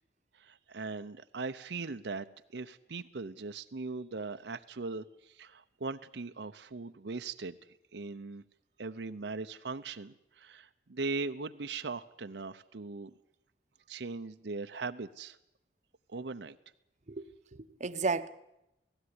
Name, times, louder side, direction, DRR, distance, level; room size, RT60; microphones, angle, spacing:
voice 1, 0.3-7.6 7.9-8.4 8.8-13.1 13.9-15.4 16.1-16.6, right 3 dB, 75° right, 0.7 m, -39 dB
voice 2, 17.1-18.3, right 4 dB, 40° right, 0.9 m, -34 dB
17.5 x 16.0 x 9.6 m
head